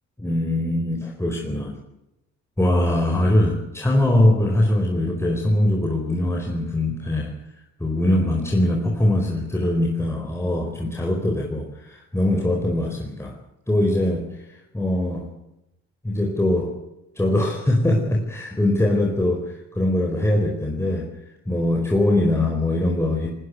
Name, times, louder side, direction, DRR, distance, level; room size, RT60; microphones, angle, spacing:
voice 1, 0.2-1.7 2.6-7.4 7.8-13.4 13.7-15.3 16.0-16.8 17.2-21.1 21.5-23.3, left 1 dB, 10° left, 0 dB, 4.5 m, -22 dB
20.5 x 19.0 x 8.2 m, 0.89 s
cardioid pair, 90°, 30 cm